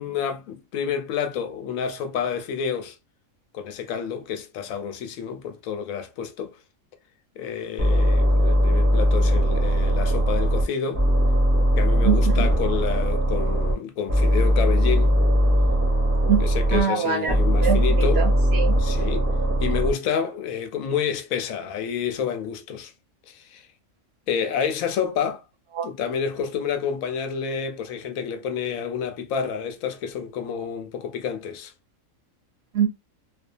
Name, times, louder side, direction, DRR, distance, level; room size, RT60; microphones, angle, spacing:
voice 1, 0.0-3.0 3.5-6.6 7.4-11.1 11.8-15.2 16.4-18.3 18.8-19.3 19.6-22.9 23.3-23.6 24.3-25.4 25.8-31.7, left 7 dB, 85° left, 1.0 m, -29 dB
sound 1, 7.8-10.6 10.9-13.7 14.1-16.8 17.3-19.9, equal, 15° right, 0.5 m, -20 dB
voice 2, 12.0-12.5 16.3-16.4 16.7-17.3 17.6-18.8 25.7-25.9 32.7-32.9, right 7 dB, 60° right, 0.8 m, -23 dB
2.6 x 2.2 x 2.5 m
omnidirectional pair, 1.4 m